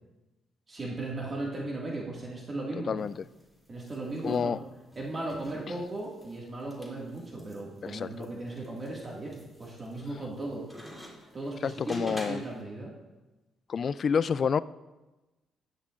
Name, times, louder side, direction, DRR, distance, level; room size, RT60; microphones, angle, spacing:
voice 1, 0.7-3.0 3.7-4.6 5.0-10.7 11.3-12.9, right 2 dB, 35° right, -3 dB, 1.9 m, -37 dB
sound 1, 3.0-12.6, equal, 5° right, 2.7 m, -49 dB
voice 2, 4.2-4.6 7.9-8.1 11.6-12.4 13.7-14.6, left 6 dB, 50° left, 17 dB, 0.3 m, -28 dB
15.5 x 10.5 x 2.5 m, 1.1 s
cardioid pair, 90°, 0 cm